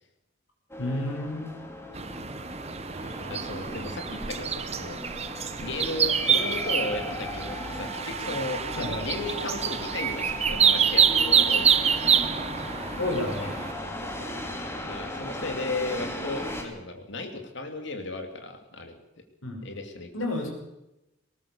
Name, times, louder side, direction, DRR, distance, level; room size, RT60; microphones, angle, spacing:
sound 1, 0.7-16.6, left 1 dB, 15° left, 2.8 m, -37 dB
voice 1, 0.8-1.5 8.8-9.1 12.9-13.6 19.4-19.7 20.1-20.5, left 1 dB, 85° left, 2 dB, 5.5 m, -31 dB
sound 2, 1.9-13.7, right 8 dB, 30° right, 0.8 m, -26 dB
voice 2, 3.3-5.0 5.6-11.8 14.0-14.3 14.8-18.9 19.6-20.1, left 2 dB, 60° left, 5 dB, 2.8 m, -35 dB
19.0 x 19.0 x 7.1 m, 0.93 s
head